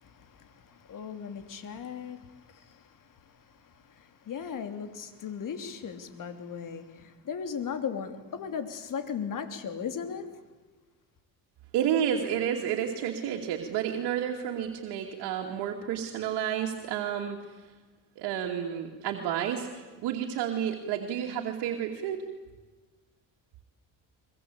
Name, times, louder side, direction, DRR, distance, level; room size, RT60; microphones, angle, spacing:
voice 1, 0.0-3.0 3.5-10.3, left 7 dB, 50° left, 3.1 m, -37 dB
voice 2, 11.7-17.6 18.2-22.2, right 9 dB, 80° right, 2.6 m, -31 dB
23.5 x 23.0 x 8.6 m
cardioid pair, 95°, 40 cm